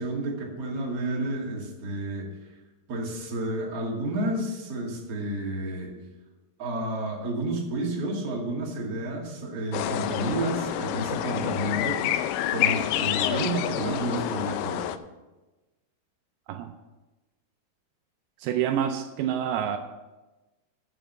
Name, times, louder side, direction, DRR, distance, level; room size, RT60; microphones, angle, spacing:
voice 1, 0.0-2.3 2.9-5.9 6.6-12.1 12.5-14.9, right 1 dB, 45° right, -2 dB, 2.6 m, -30 dB
sound 1, 9.7-15.0, left 11 dB, 80° left, 2.1 m, -28 dB
voice 2, 18.4-19.8, right 9 dB, 85° right, 6 dB, 2.5 m, -27 dB
9.0 x 7.2 x 7.0 m, 1.1 s
omnidirectional pair, 4.4 m